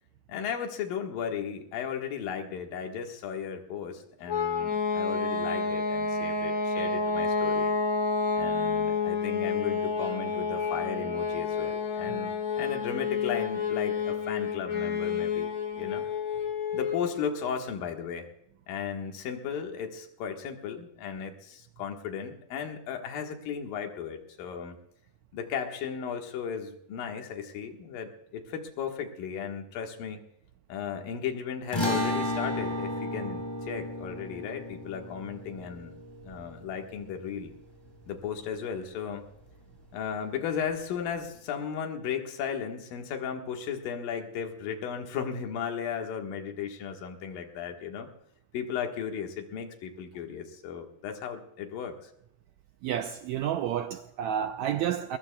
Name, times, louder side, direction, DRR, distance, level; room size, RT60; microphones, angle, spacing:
voice 1, 0.3-7.7 8.4-16.1 16.7-18.2 18.7-24.8 25.3-30.2 30.7-35.9 36.2-37.5 38.1-39.3 39.9-48.1 48.5-52.1, left 7 dB, 75° left, 3.2 m, -35 dB
sound 1, 4.3-17.1, left 4 dB, 50° left, 2.8 m, -29 dB
sound 2, 31.7-38.2, left 1 dB, 10° left, 1.9 m, -34 dB
voice 2, 52.8-55.2, right 10 dB, 85° right, 1.6 m, -30 dB
22.5 x 21.0 x 2.3 m
omnidirectional pair, 4.0 m